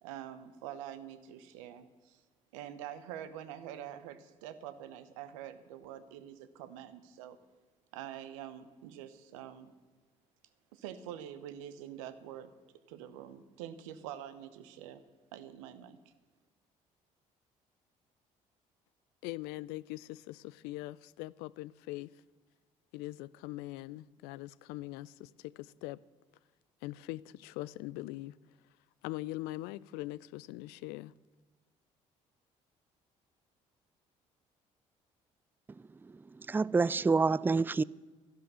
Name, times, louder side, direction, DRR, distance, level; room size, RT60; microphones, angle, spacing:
voice 1, 0.0-2.2 2.5-7.4 7.9-9.7 10.7-12.5 12.9-15.0 15.3-16.0, right 10 dB, 85° right, 0.9 m, -46 dB
voice 2, 19.2-22.1 22.9-26.0 26.8-28.4 29.0-31.1, left 18 dB, 75° left, 0.4 m, -42 dB
voice 3, 36.5-37.8, right 4 dB, 10° right, 0.3 m, -27 dB
12.5 x 11.0 x 6.8 m
hypercardioid pair, 55°, 17 cm